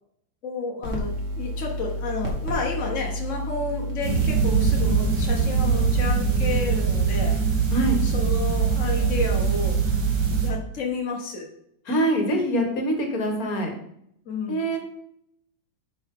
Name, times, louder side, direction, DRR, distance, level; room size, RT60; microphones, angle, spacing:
voice 1, 0.4-7.4 8.0-9.8 10.4-11.5 14.3-14.7, left 4 dB, 90° left, -1 dB, 0.6 m, -31 dB
sound 1, 0.8-6.1, equal, 40° right, 1.1 m, -31 dB
sound 2, 4.0-10.5, right 6 dB, 70° right, 3.4 m, -22 dB
voice 2, 11.9-13.7 14.5-14.8, right 1 dB, 45° left, 3 dB, 1.2 m, -24 dB
11.0 x 4.8 x 3.7 m, 0.73 s
omnidirectional pair, 3.5 m